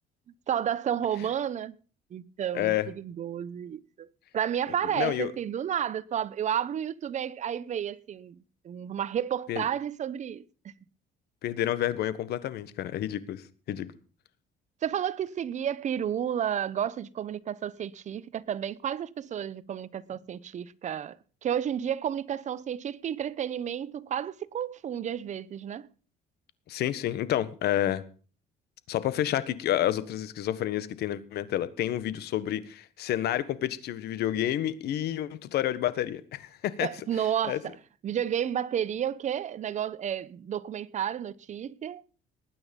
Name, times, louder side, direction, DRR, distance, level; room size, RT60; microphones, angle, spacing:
voice 1, 0.5-1.8 2.1-4.1 4.3-10.7 14.8-21.2 21.4-25.9 36.8-37.7 38.0-42.0, right 9 dB, 45° right, 0.9 m, -31 dB
voice 2, 2.5-2.9 4.9-5.3 9.5-9.6 11.4-13.9 26.7-28.0 28.9-36.9 37.5-37.6, left 12 dB, 70° left, 1.4 m, -29 dB
19.0 x 9.4 x 5.4 m
cardioid pair, 110°, 17 cm